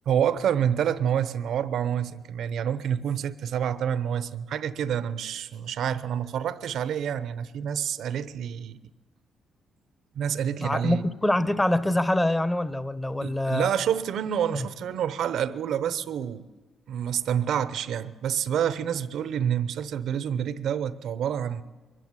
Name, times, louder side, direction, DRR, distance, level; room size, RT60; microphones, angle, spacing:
voice 1, 0.1-8.8 10.1-11.0 13.2-16.5 16.9-21.6, right 9 dB, 70° right, 0.9 m, -28 dB
voice 2, 10.6-13.7 14.5-14.7, left 1 dB, 15° left, 1.1 m, -25 dB
22.5 x 14.0 x 9.7 m
cardioid pair, 90°, 0 cm